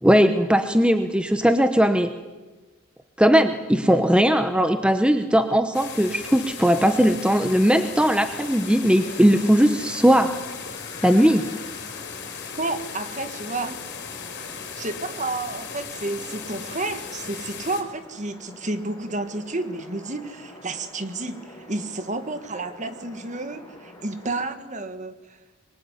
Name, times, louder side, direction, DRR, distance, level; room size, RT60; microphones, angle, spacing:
voice 1, 0.0-2.1 3.2-10.3 11.0-11.4, equal, 5° right, 8 dB, 1.0 m, -19 dB
sound 1, 5.7-17.8, left 6 dB, 50° left, 4.8 m, -37 dB
sound 2, 8.4-24.3, left 1 dB, 20° left, 6.6 m, -46 dB
voice 2, 12.6-13.8 14.7-25.4, right 2 dB, 35° right, 10 dB, 1.8 m, -31 dB
25.0 x 23.0 x 9.8 m, 1.3 s
head